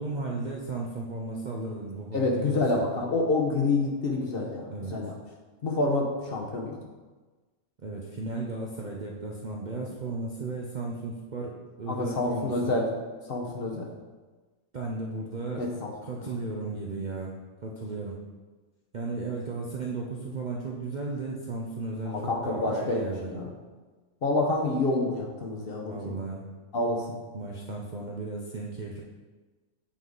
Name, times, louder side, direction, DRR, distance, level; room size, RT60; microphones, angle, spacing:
voice 1, 0.0-2.8 4.7-5.0 7.8-12.7 14.7-15.7 16.0-17.3 17.6-18.2 18.9-22.1 22.4-23.3 25.9-26.5 27.3-29.0, right 3 dB, 45° right, -3 dB, 0.6 m, -35 dB
voice 2, 2.1-5.1 5.6-6.7 11.9-12.9 13.3-13.9 15.6-15.7 22.1-23.5 24.2-26.1 26.7-27.1, left 2 dB, 45° left, -1 dB, 1.0 m, -27 dB
8.4 x 3.7 x 3.9 m, 1.3 s
omnidirectional pair, 1.5 m